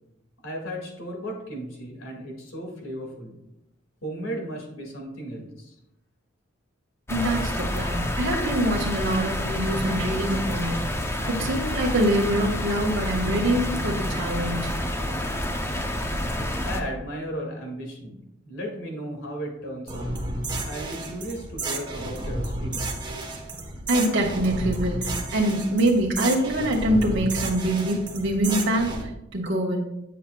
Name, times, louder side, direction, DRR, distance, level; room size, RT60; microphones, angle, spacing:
voice 1, 0.4-3.4 4.0-5.7 16.6-20.1 20.7-23.0, equal, 80° left, 0 dB, 2.1 m, -35 dB
sound 1, 7.1-16.8, left 1 dB, 15° left, 0.6 m, -28 dB
voice 2, 7.1-14.7 23.9-29.8, right 1 dB, 65° right, -4 dB, 1.2 m, -25 dB
sound 2, 19.9-29.0, right 2 dB, 25° right, 1.1 m, -32 dB
8.6 x 7.3 x 2.3 m, 0.88 s
head